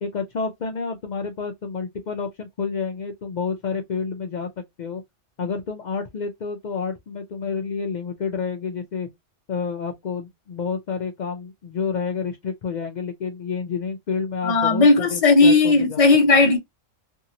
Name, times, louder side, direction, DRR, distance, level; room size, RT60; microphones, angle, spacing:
voice 1, 0.0-4.5 4.8-5.0 5.4-9.1 9.5-16.0 16.4-16.5, left 5 dB, 90° left, 0.4 m, -29 dB
voice 2, 14.4-16.6, left 3 dB, 35° left, 0.6 m, -16 dB
2.7 x 2.6 x 2.7 m
omnidirectional pair, 1.3 m